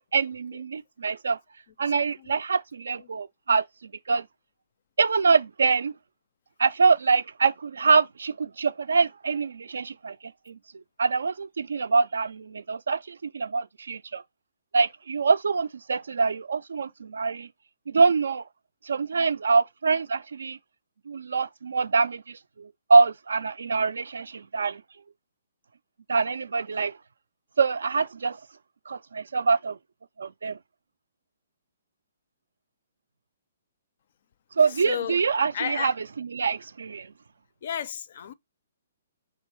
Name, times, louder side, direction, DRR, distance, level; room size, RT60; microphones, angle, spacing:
voice 1, 0.1-1.4 1.8-4.2 5.0-5.9 6.6-10.2 10.5-10.6 11.0-14.2 14.7-17.5 17.9-18.4 18.8-20.6 21.1-24.8 26.1-26.9 27.6-28.4 28.9-29.8 30.2-30.6 34.6-35.9 36.2-37.1, right 4 dB, 70° right, 0.3 m, -24 dB
voice 2, 34.7-35.9 37.6-38.3, left 9 dB, 50° left, 0.4 m, -33 dB
3.2 x 3.0 x 4.5 m
figure-of-eight pair, 125°, 0 cm